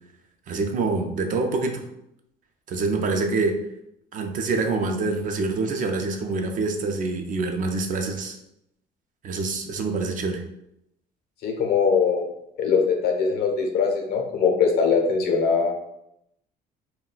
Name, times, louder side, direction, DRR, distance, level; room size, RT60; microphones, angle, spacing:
voice 1, 0.5-1.9 2.7-3.6 4.1-8.4 9.2-10.4, right 3 dB, 50° right, 4 dB, 0.5 m, -26 dB
voice 2, 11.4-12.3 12.6-15.9, left 5 dB, 70° left, 3 dB, 0.7 m, -22 dB
2.3 x 2.2 x 3.8 m, 0.80 s
cardioid pair, 110°, 17 cm